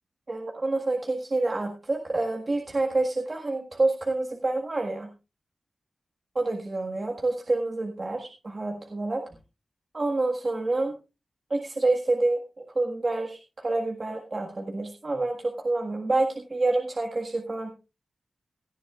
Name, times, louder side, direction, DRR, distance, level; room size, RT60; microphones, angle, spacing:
voice 1, 0.3-5.1 6.4-9.2 9.9-10.9 11.5-17.7, right 2 dB, 30° right, 1 dB, 1.6 m, -27 dB
17.5 x 13.0 x 2.4 m, 0.28 s
wide cardioid pair, 170°, 0 cm